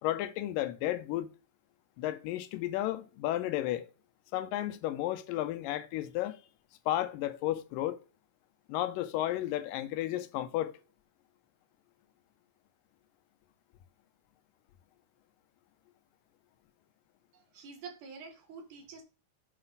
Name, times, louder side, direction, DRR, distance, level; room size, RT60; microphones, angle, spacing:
voice 1, 0.0-1.3 2.0-3.9 4.3-6.4 6.9-8.0 8.7-10.7, left 13 dB, 85° left, 2.3 m, -33 dB
voice 2, 17.3-19.0, right 5 dB, 70° right, 2.9 m, -47 dB
7.9 x 5.3 x 4.0 m
omnidirectional pair, 3.8 m